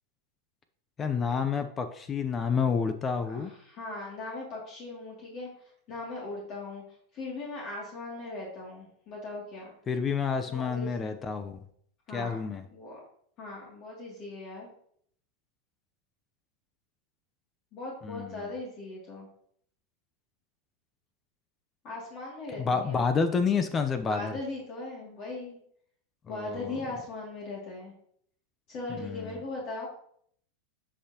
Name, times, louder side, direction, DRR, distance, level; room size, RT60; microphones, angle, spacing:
voice 1, 1.0-3.5 9.9-11.6 12.1-12.7 18.0-18.5 22.6-24.4 26.3-26.8 28.9-29.3, left 5 dB, 25° left, 9 dB, 0.7 m, -29 dB
voice 2, 3.3-6.8 7.1-9.7 10.5-11.1 12.1-12.4 12.7-13.0 13.4-14.7 17.7-19.3 21.8-23.1 24.1-25.6 26.3-27.9 28.7-29.9, left 2 dB, 45° left, -3 dB, 2.5 m, -39 dB
10.0 x 5.6 x 2.9 m, 0.65 s
hypercardioid pair, 110°, 0 cm